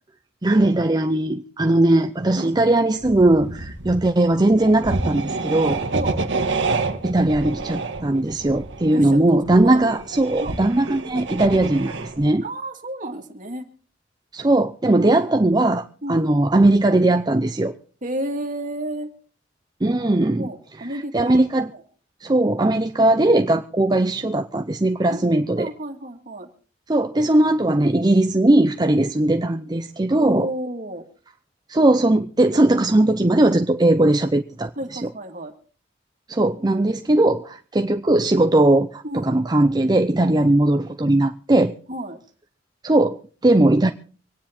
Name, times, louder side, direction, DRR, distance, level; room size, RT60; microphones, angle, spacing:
voice 1, 0.4-5.8 7.0-12.4 14.3-17.7 19.8-20.5 20.8-21.7 22.2-25.7 26.9-30.5 31.7-35.0 36.3-41.8 42.8-43.9, right 1 dB, 20° right, 0.6 m, -19 dB
sound 1, 3.0-12.3, right 3 dB, 70° right, 1.5 m, -28 dB
voice 2, 5.9-6.3 8.3-8.4 8.9-9.8 10.4-10.6 11.5-11.6 12.4-13.6 14.9-15.4 16.0-16.2 18.0-19.1 20.4-21.4 21.7-21.8 25.1-25.2 25.6-26.5 28.9-29.1 30.2-31.0 34.8-35.5 39.0-39.3 40.3-40.5 41.9-42.2, right 1 dB, 45° right, 2.2 m, -31 dB
25.0 x 9.8 x 4.4 m
head